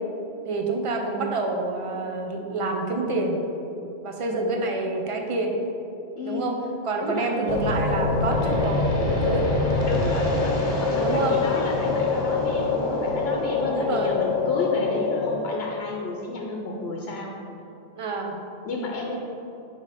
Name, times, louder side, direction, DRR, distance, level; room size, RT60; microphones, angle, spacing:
voice 1, 0.5-3.4 4.0-5.5 6.3-6.6 6.8-9.5 11.0-11.4 11.8-12.0 13.6-14.2 18.0-18.4 19.1-19.2, right 3 dB, 40° right, 2 dB, 0.6 m, -27 dB
voice 2, 6.2-6.5 7.0-7.6 9.9-17.3 18.6-19.2, left 3 dB, 80° left, -1 dB, 0.9 m, -31 dB
sound 1, 7.5-15.3, left 3 dB, 40° left, 0.8 m, -24 dB
5.0 x 4.9 x 4.1 m, 2.8 s
omnidirectional pair, 1.0 m